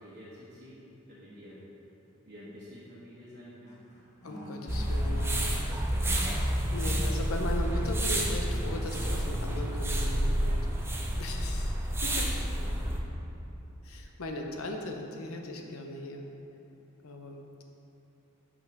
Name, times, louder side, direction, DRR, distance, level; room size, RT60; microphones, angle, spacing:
voice 1, 0.0-1.6 2.2-3.8 5.9-6.1 12.6-13.2, equal, 45° right, -10 dB, 1.3 m, -49 dB
sound 1, 3.7-7.9 8.3-9.1, equal, 35° left, 1.4 m, -45 dB
voice 2, 4.2-5.5 6.7-10.6 11.2-12.3 13.8-16.2 17.0-17.6, left 1 dB, 85° left, 2 dB, 0.8 m, -38 dB
sound 2, 4.7-13.0, equal, 10° right, 0.7 m, -29 dB
6.0 x 5.4 x 6.0 m, 3.0 s
head